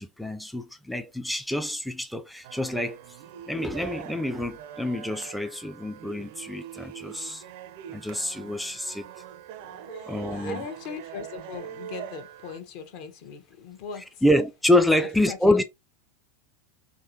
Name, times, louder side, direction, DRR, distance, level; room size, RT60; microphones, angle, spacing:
voice 1, 0.0-3.0 3.5-7.4 7.9-9.1 10.1-10.6 14.2-15.6, left 1 dB, ahead, 0.3 m, -26 dB
sound 1, 2.4-12.6, right 10 dB, 65° right, 0.4 m, -43 dB
voice 2, 9.5-14.2 14.7-15.6, left 6 dB, 60° left, 0.9 m, -40 dB
3.7 x 3.0 x 2.7 m
hypercardioid pair, 115°, 0 cm